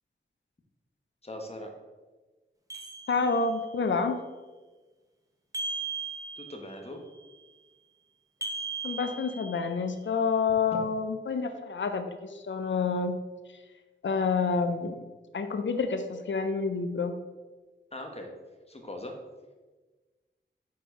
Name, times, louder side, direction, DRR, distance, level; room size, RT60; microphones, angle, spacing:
voice 1, 1.2-1.7 6.4-7.0 10.7-10.8 17.9-18.3 18.7-19.1, left 1 dB, 30° left, 2 dB, 1.1 m, -40 dB
sound 1, 2.7-3.7 5.5-6.8 8.4-9.9, right 4 dB, 15° right, 1.0 m, -37 dB
voice 2, 3.1-4.2 8.8-13.2 14.0-15.0 15.3-17.2, left 4 dB, 75° left, 8 dB, 0.5 m, -28 dB
4.6 x 4.6 x 4.4 m, 1.3 s
wide cardioid pair, 60°, 20 cm